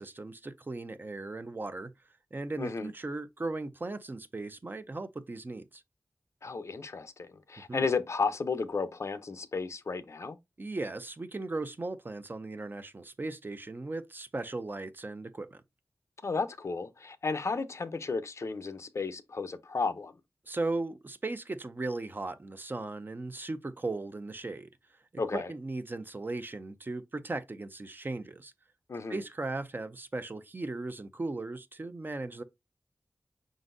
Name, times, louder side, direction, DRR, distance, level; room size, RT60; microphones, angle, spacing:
voice 1, 0.0-1.9 2.3-5.8 7.7-7.9 10.6-15.6 20.5-24.7 25.3-28.5 29.1-32.4, right 2 dB, 40° right, 0.5 m, -37 dB
voice 2, 2.6-2.9 6.4-10.4 16.2-20.1 25.2-25.5 28.9-29.2, left 4 dB, 60° left, 0.5 m, -33 dB
5.0 x 3.9 x 2.6 m
wide cardioid pair, 65°, 5 cm